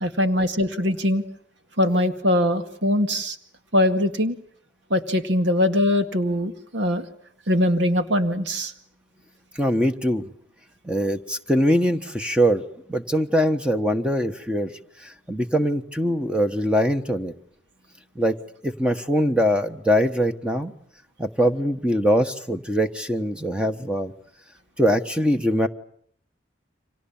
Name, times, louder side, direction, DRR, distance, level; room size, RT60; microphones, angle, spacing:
voice 1, 0.0-1.2 1.8-3.4 3.7-4.4 4.9-7.1 7.5-8.7, left 1 dB, 80° right, 8 dB, 2.1 m, -22 dB
voice 2, 9.5-10.3 10.8-12.6 12.9-14.7 15.0-17.3 18.1-18.4 18.6-20.7 21.2-24.1 24.8-25.7, equal, 5° right, 6 dB, 1.3 m, -22 dB
29.5 x 25.5 x 7.3 m, 0.64 s
head